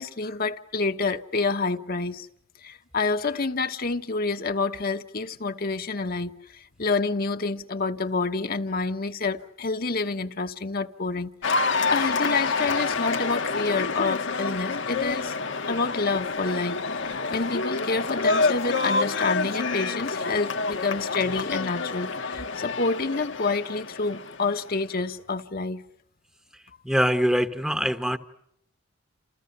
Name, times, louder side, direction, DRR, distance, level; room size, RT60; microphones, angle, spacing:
voice 1, 0.0-2.3 2.6-15.3 15.7-25.8, left 3 dB, 45° left, 1.2 m, -28 dB
Cheering / Applause, 11.4-24.8, left 4 dB, 65° left, 1.4 m, -28 dB
voice 2, 26.8-28.2, equal, 5° right, 1.1 m, -23 dB
29.5 x 28.0 x 6.7 m
head